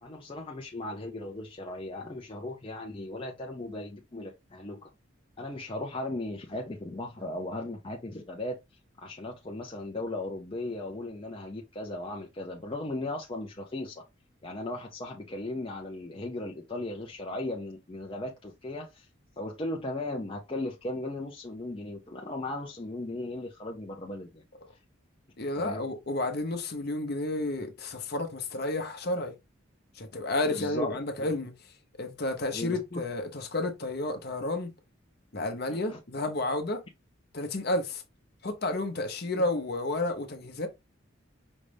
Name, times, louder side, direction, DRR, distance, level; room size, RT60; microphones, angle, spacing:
voice 1, 0.0-4.9 5.4-8.6 9.0-14.0 14.4-19.1 19.4-24.4 25.6-25.9 30.4-31.3 32.5-33.0 35.7-36.0, left 2 dB, 25° left, 0.5 m, -37 dB
voice 2, 25.4-29.3 30.0-31.5 32.0-34.7 35.3-36.8 37.3-38.0 38.4-40.7, left 2 dB, 50° left, 0.8 m, -31 dB
5.2 x 2.4 x 3.3 m
head